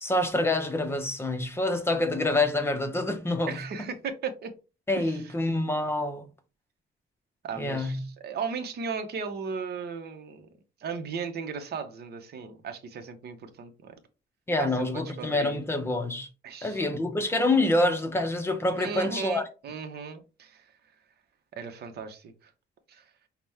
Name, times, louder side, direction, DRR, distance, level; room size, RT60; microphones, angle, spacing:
voice 1, 0.0-3.6 4.9-6.3 7.6-8.0 14.5-16.3 16.6-19.4, left 2 dB, 10° left, 0.6 m, -26 dB
voice 2, 3.5-4.5 5.0-5.3 7.4-10.5 10.8-13.9 14.6-15.6 16.4-16.8 18.8-20.6 21.5-22.5 22.9-23.1, right 5 dB, 55° right, 0.8 m, -36 dB
5.8 x 2.2 x 3.4 m
cardioid pair, 165°, 20 cm